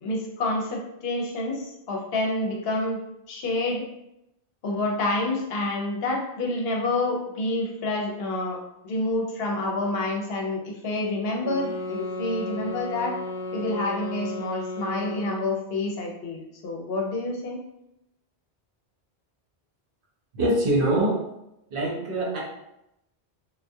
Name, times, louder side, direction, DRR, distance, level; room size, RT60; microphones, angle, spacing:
voice 1, 0.0-3.0 3.3-3.8 4.6-8.6 8.8-13.1 13.5-17.6, left 2 dB, 75° left, -1 dB, 0.8 m, -28 dB
sound 1, 11.4-15.6, left 2 dB, 45° left, 0.6 m, -34 dB
voice 2, 20.3-21.2 21.7-22.4, right 1 dB, 65° right, -3 dB, 0.8 m, -23 dB
2.2 x 2.2 x 2.6 m, 0.84 s
omnidirectional pair, 1.0 m